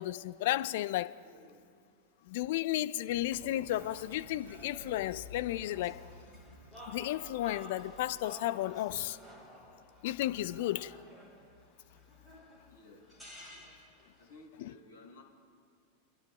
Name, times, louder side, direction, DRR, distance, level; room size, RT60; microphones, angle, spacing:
voice 1, 0.0-1.1 2.3-6.0 6.9-9.2 10.0-10.9 14.6-14.7, left 14 dB, 50° left, 0.3 m, -33 dB
voice 2, 1.2-1.7 12.7-13.9 14.2-15.2, left 2 dB, 75° left, 2.4 m, -57 dB
Boom, 3.1-8.3, right 4 dB, 70° right, 0.6 m, -56 dB
sound 1, 3.7-14.4, left 2 dB, ahead, 2.2 m, -52 dB
28.5 x 11.5 x 2.3 m
figure-of-eight pair, 90°, 0 cm